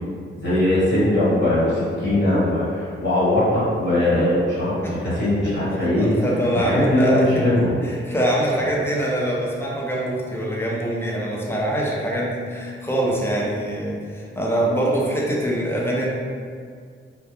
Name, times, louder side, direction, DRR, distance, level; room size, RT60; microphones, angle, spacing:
voice 1, 0.3-6.1 6.5-7.7, left 1 dB, 60° left, -10 dB, 1.1 m, -20 dB
voice 2, 4.8-5.3 6.0-7.2 7.8-16.1, right 1 dB, 10° left, -4 dB, 0.4 m, -24 dB
2.2 x 2.1 x 2.8 m, 2.1 s
wide cardioid pair, 155°, 21 cm